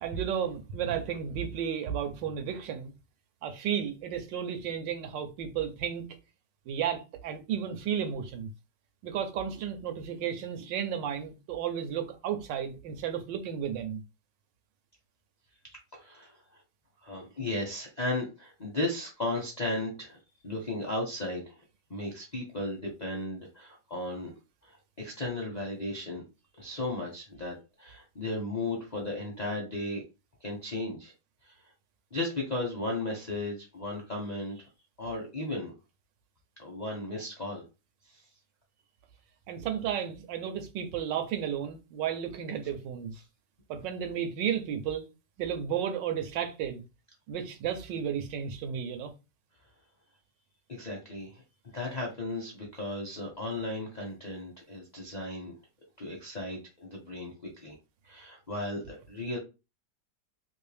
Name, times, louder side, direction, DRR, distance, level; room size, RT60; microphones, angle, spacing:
voice 1, 0.0-2.9 3.4-6.1 6.7-8.5 9.0-14.0 39.5-43.1 43.7-45.1 45.4-46.8 47.3-49.1, right 8 dB, 85° right, 1.4 m, -33 dB
voice 2, 15.9-16.6 17.0-20.2 20.4-21.6 21.9-24.3 24.6-26.2 26.6-30.0 30.4-31.1 31.4-31.5 32.1-34.7 35.0-35.7 36.6-37.6 38.1-38.2 50.7-51.4 51.7-55.5 56.0-57.3 57.6-57.8 58.0-59.4, left 2 dB, 45° left, 0.5 m, -35 dB
3.2 x 2.7 x 3.3 m
omnidirectional pair, 1.9 m